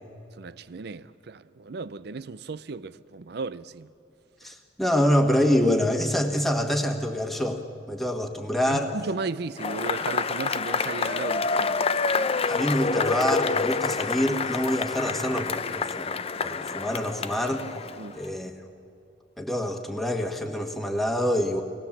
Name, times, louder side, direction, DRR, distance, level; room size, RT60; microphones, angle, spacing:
voice 1, 0.4-3.9 8.7-11.8 12.6-12.7 18.0-18.2, right 4 dB, 60° right, 0.5 m, -35 dB
voice 2, 4.4-8.9 12.5-16.1 16.4-17.7 18.1-18.5 19.4-21.6, equal, ahead, 1.4 m, -26 dB
Cheering / Applause / Crowd, 9.6-18.2, left 4 dB, 35° left, 0.5 m, -27 dB
25.0 x 19.5 x 7.2 m
head